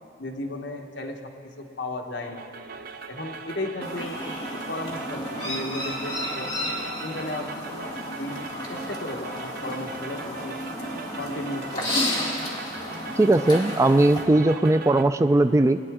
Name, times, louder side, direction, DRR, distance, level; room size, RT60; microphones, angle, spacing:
voice 1, 0.2-2.5 3.1-6.5 7.0-10.6 11.2-12.1, left 2 dB, 65° left, 2 dB, 1.2 m, -35 dB
sound 1, 2.2-15.1, right 4 dB, 55° right, 0.6 m, -40 dB
Chirp tweet, 3.8-14.2, left 1 dB, 25° left, 2.0 m, -32 dB
voice 2, 13.2-15.8, right 2 dB, 15° right, 10 dB, 0.3 m, -19 dB
20.0 x 10.0 x 3.6 m, 2.4 s
head